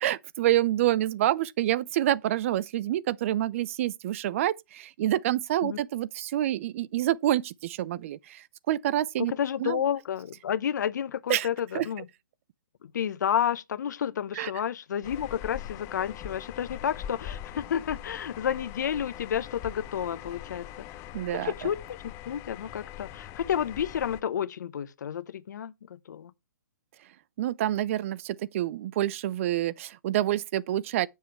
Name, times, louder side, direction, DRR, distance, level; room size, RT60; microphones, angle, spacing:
voice 1, 0.0-9.3 9.6-9.8 11.3-11.5 11.7-11.9 14.4-14.5 21.1-21.5 27.4-31.1, right 13 dB, 40° right, 0.5 m, -27 dB
voice 2, 9.2-12.1 12.8-21.0 21.4-26.3, left 9 dB, 60° left, 0.8 m, -31 dB
sound 1, 15.0-24.2, left 11 dB, 25° left, 0.7 m, -42 dB
7.6 x 7.3 x 4.5 m
hypercardioid pair, 140°, 11 cm